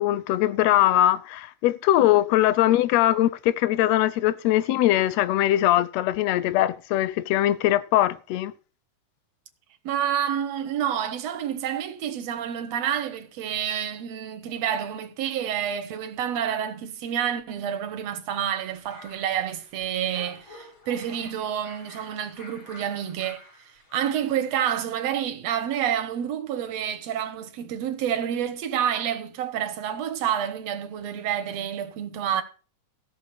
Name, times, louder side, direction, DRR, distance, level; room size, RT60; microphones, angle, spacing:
voice 1, 0.0-8.5, left 13 dB, 75° left, 1.6 m, -21 dB
voice 2, 9.8-23.4 23.9-32.4, right 9 dB, 60° right, 2.2 m, -28 dB
sound 1, 18.7-24.4, left 2 dB, 40° left, 3.4 m, -48 dB
14.5 x 6.5 x 6.7 m
omnidirectional pair, 3.7 m